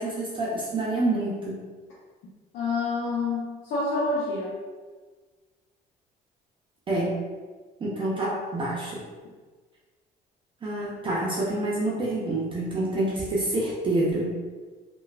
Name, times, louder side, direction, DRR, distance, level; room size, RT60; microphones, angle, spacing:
voice 1, 0.0-1.6 6.9-7.2 7.8-9.0 10.6-14.4, right 2 dB, 30° right, -4 dB, 0.5 m, -27 dB
voice 2, 2.5-4.6, left 3 dB, 80° left, -7 dB, 0.6 m, -27 dB
3.0 x 2.2 x 2.3 m, 1.4 s
cardioid pair, 110°, 17 cm